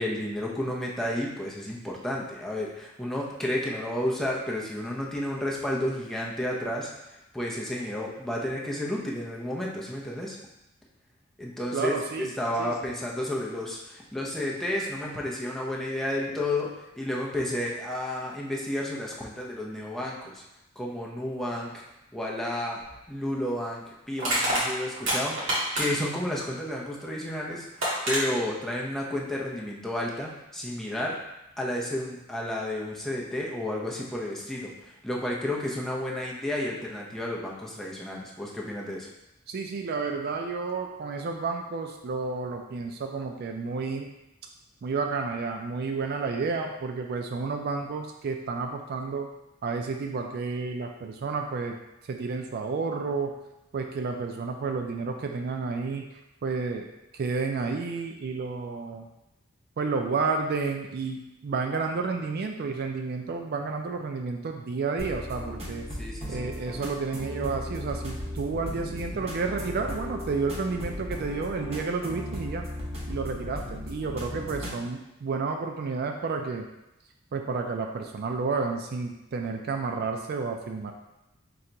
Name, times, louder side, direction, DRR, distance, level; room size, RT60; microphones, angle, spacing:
voice 1, 0.0-6.9 7.3-10.4 11.4-11.9 12.4-20.4 20.8-21.8 22.1-22.8 23.1-31.2 31.6-39.1 66.0-66.5, left 1 dB, ahead, -4 dB, 0.6 m, -31 dB
voice 2, 11.7-12.3 12.6-12.9 39.5-44.1 44.8-49.3 49.6-51.8 52.1-53.3 53.7-56.0 56.4-56.9 57.1-59.1 59.8-65.8 66.3-72.6 73.1-76.6 77.3-80.9, right 4 dB, 50° right, 4 dB, 0.4 m, -31 dB
Crushing, 22.9-23.0 24.2-26.2 27.3-27.4 27.8-28.2, right 1 dB, 70° right, 1.6 m, -27 dB
sound 1, 65.0-74.8, left 1 dB, 30° right, 0.9 m, -36 dB
3.8 x 2.8 x 4.4 m, 0.92 s
head